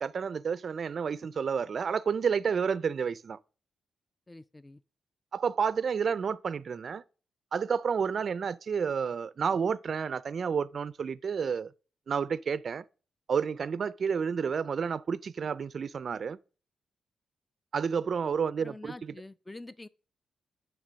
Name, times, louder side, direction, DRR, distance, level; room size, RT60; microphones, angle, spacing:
voice 1, 0.0-3.4 5.3-7.0 7.5-11.7 12.1-12.8 13.3-16.4 17.7-19.1, right 6 dB, 55° right, 0.3 m, -30 dB
voice 2, 4.3-4.8 18.6-19.9, left 2 dB, 20° left, 0.4 m, -46 dB
10.0 x 3.4 x 6.2 m
cardioid pair, 70°, 0 cm